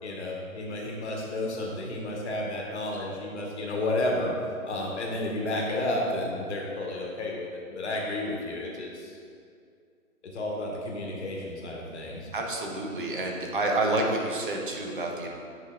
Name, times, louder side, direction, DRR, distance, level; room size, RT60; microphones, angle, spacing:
voice 1, 0.0-4.3 4.6-9.2 10.3-12.3, left 1 dB, 50° left, -2 dB, 1.3 m, -31 dB
voice 2, 12.3-15.3, right 2 dB, 35° right, 0 dB, 0.7 m, -28 dB
8.3 x 5.0 x 2.4 m, 2.3 s
hypercardioid pair, 160°, 43 cm